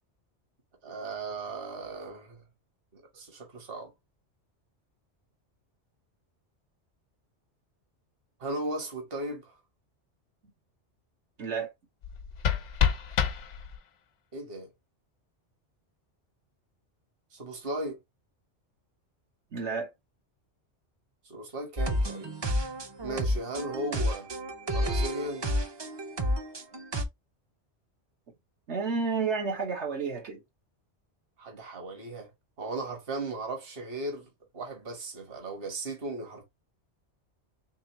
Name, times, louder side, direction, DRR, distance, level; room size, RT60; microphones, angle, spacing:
voice 1, 0.8-2.4 2.9-3.9 8.4-9.6 14.3-14.7 17.3-18.0 21.2-22.3 23.0-24.3 24.7-25.4 31.4-32.3 32.6-34.3 34.5-36.4, right 2 dB, 55° right, 1.4 m, -36 dB
voice 2, 11.4-11.7 19.5-19.9 28.7-30.4, right 5 dB, 80° right, 1.5 m, -30 dB
sound 1, 12.0-14.0, left 8 dB, 85° left, 1.1 m, -28 dB
sound 2, 21.8-27.0, equal, 35° right, 0.4 m, -30 dB
3.6 x 3.4 x 2.8 m
omnidirectional pair, 1.2 m